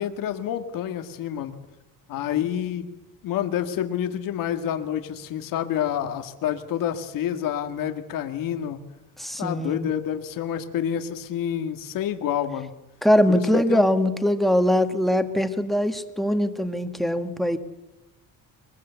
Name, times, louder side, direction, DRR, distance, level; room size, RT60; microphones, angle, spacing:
voice 1, 0.0-1.5 2.1-2.9 3.2-8.8 9.4-12.7 13.3-13.9, left 10 dB, 80° left, 7 dB, 2.0 m, -28 dB
voice 2, 9.2-9.9 13.0-17.6, equal, ahead, 9 dB, 1.8 m, -22 dB
22.5 x 22.0 x 8.2 m, 0.98 s
cardioid pair, 135°, 33 cm